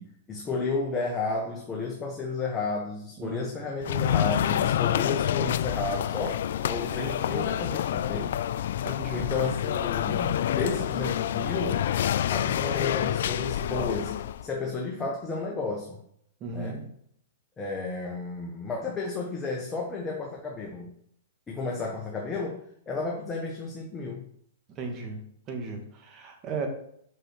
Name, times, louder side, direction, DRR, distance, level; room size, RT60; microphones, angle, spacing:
voice 1, 0.0-8.3 9.1-11.8 12.3-14.2 14.4-16.0 16.5-16.8 17.6-20.9 21.5-24.3, left 3 dB, 20° left, -1 dB, 1.2 m, -32 dB
voice 2, 3.2-3.5 8.8-9.3 16.4-16.8 24.7-25.2 25.5-26.7, right 4 dB, 30° right, 3 dB, 1.8 m, -35 dB
sound 1, 3.8-14.5, left 10 dB, 65° left, 0.3 m, -28 dB
6.2 x 6.2 x 4.4 m, 0.68 s
hypercardioid pair, 125°, 0 cm